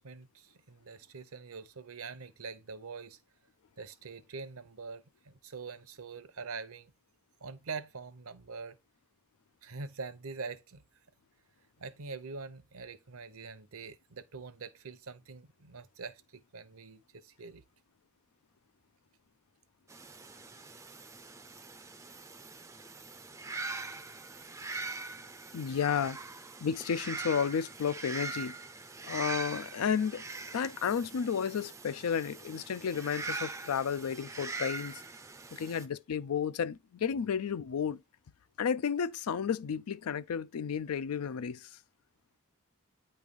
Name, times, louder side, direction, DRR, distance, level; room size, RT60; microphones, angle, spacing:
voice 1, 0.0-3.2 3.8-6.9 7.4-8.8 9.6-10.8 11.8-17.6, right 4 dB, 80° right, 0.8 m, -44 dB
sound 1, 19.9-35.9, right 3 dB, 15° right, 0.4 m, -42 dB
voice 2, 25.5-26.2 26.6-28.5 29.0-30.2 30.5-35.0 35.5-38.0 38.6-41.7, left 7 dB, 85° left, 0.4 m, -32 dB
9.1 x 3.2 x 5.3 m
head